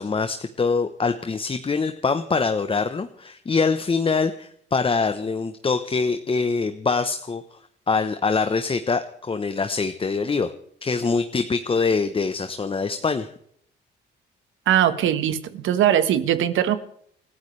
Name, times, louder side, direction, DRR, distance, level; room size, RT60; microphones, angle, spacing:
voice 1, 0.0-7.6 7.9-10.5 10.8-13.3, left 4 dB, 25° left, 9 dB, 1.0 m, -24 dB
voice 2, 14.7-16.8, right 10 dB, 80° right, 11 dB, 1.4 m, -20 dB
29.5 x 13.0 x 3.3 m, 0.66 s
cardioid pair, 90°, 20 cm